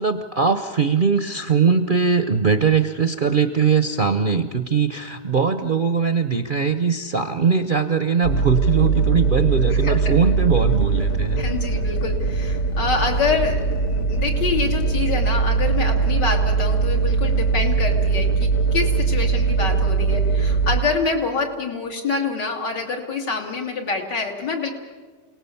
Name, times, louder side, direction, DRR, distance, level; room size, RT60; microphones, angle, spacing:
voice 1, 0.0-11.4, right 6 dB, 50° right, 9 dB, 0.6 m, -20 dB
sound 1, 8.2-20.8, right 4 dB, 55° left, 1.6 m, -21 dB
voice 2, 9.8-10.2 11.4-24.7, left 4 dB, 80° left, 1 dB, 3.1 m, -26 dB
28.0 x 18.5 x 7.0 m, 1.4 s
omnidirectional pair, 1.8 m